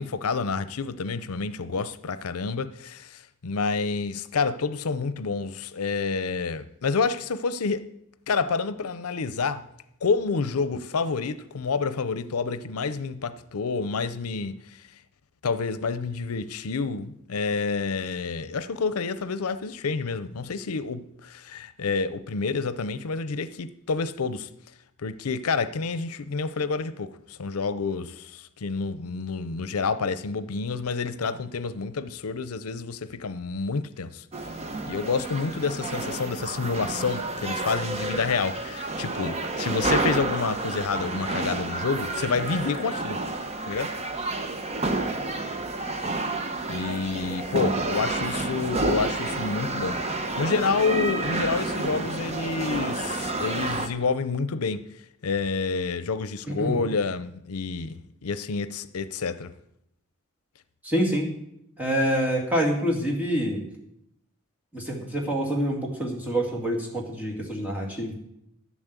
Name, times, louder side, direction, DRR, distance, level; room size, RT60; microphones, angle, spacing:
voice 1, 0.0-7.9 8.3-9.6 10.0-14.8 15.4-24.5 25.0-34.2 34.9-43.2 43.7-43.9 46.7-50.0 50.4-54.9 55.2-59.5, left 4 dB, 85° left, 0.6 m, -28 dB
sound 1, 34.3-53.9, right 2 dB, 30° right, 0.9 m, -30 dB
voice 2, 60.8-61.3 61.8-63.6 64.7-68.1, equal, 5° right, 2.5 m, -26 dB
12.0 x 7.3 x 8.2 m
head